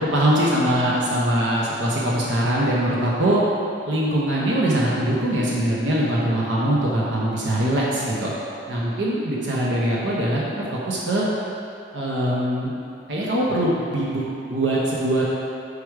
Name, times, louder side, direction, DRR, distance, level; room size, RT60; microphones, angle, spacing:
voice 1, 0.1-3.4 3.8-8.3 8.7-10.4 10.7-11.3 11.9-12.7 13.1-15.2, right 1 dB, 90° right, -5 dB, 0.9 m, -22 dB
5.0 x 4.9 x 4.7 m, 2.6 s
head